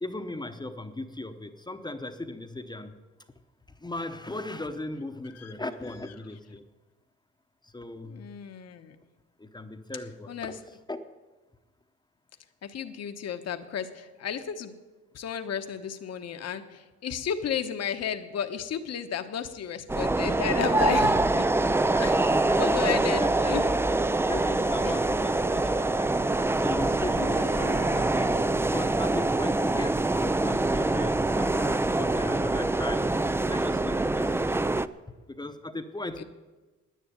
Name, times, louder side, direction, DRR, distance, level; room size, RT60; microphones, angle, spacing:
voice 1, 0.0-2.9 3.7-6.6 7.6-8.3 9.4-10.6 10.9-11.0 21.9-23.6 24.3-26.1 26.6-28.4 28.7-33.1 33.5-34.6 35.3-36.2, left 2 dB, 15° left, 7 dB, 0.9 m, -37 dB
voice 2, 8.1-8.9 10.3-10.6 12.6-14.7 15.1-21.5 22.0-22.3 22.6-23.7 24.9-25.0 27.2-28.1 36.2-36.3, left 8 dB, 55° left, 8 dB, 1.1 m, -33 dB
sound 1, 19.9-34.9, right 2 dB, 10° right, 0.4 m, -25 dB
10.0 x 9.8 x 9.4 m, 1.2 s
cardioid pair, 90°, 30 cm